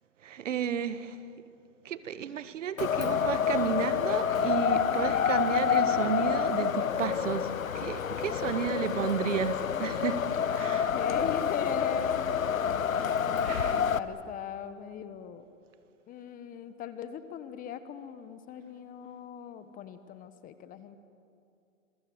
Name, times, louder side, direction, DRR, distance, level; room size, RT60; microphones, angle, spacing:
voice 1, 0.2-1.2 1.8-7.5 7.7-10.2 10.5-10.9 13.4-13.8, right 8 dB, 70° right, 13 dB, 1.6 m, -32 dB
Wind, 2.8-14.0, left 7 dB, 90° left, 1.1 m, -28 dB
voice 2, 8.2-8.8 10.6-12.2 13.2-15.4 16.1-21.0, left 8 dB, 20° left, 12 dB, 1.1 m, -40 dB
27.5 x 22.0 x 7.9 m, 2.5 s
hypercardioid pair, 130°, 39 cm